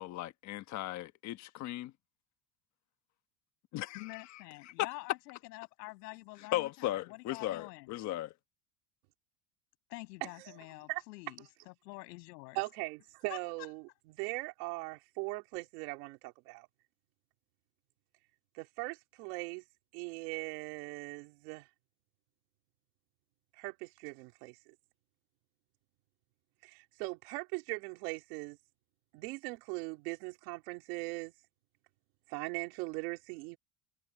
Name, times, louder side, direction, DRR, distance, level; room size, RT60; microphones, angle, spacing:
voice 1, 0.0-1.9 3.7-4.0 6.5-8.3, left 14 dB, 35° left, 1.3 m, -37 dB
voice 2, 3.9-7.9 9.9-12.6 13.3-13.7, left 24 dB, 80° left, 6.7 m, -47 dB
voice 3, 12.5-13.8 14.1-16.7 18.5-19.6 19.9-21.7 23.5-24.6 26.6-28.6 29.1-31.3 32.3-33.6, right 27 dB, 70° right, 3.2 m, -40 dB
cardioid pair, 170°, 48 cm